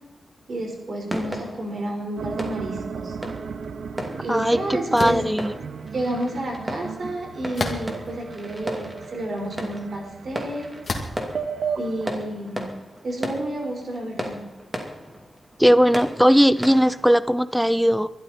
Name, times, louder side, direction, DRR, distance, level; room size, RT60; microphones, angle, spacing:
voice 1, 0.5-3.2 4.2-5.2 5.9-10.7 11.7-12.7 13.0-14.4, right 1 dB, 50° right, 2 dB, 4.6 m, -30 dB
sound 1, 1.1-17.1, right 1 dB, 15° right, 2.5 m, -36 dB
sound 2, 2.2-12.1, right 6 dB, 80° right, 1.0 m, -35 dB
voice 2, 4.0-5.5 15.6-18.1, equal, ahead, 15 dB, 0.5 m, -19 dB
sound 3, 4.9-5.3 7.5-8.1 8.8-8.9 10.8-11.2, left 3 dB, 45° left, 2.4 m, -29 dB
22.0 x 12.5 x 4.3 m, 0.99 s
wide cardioid pair, 145°, 0 cm